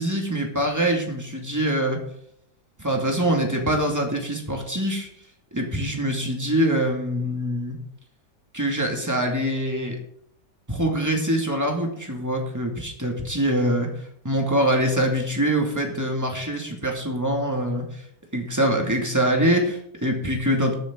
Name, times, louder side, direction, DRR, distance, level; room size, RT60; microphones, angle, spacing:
voice 1, 0.0-2.0 2.8-5.1 5.5-7.8 8.5-10.0 10.7-13.9 14.2-18.0 18.3-20.7, right 1 dB, 10° right, 1 dB, 2.2 m, -24 dB
19.5 x 7.1 x 3.8 m, 0.72 s
omnidirectional pair, 1.9 m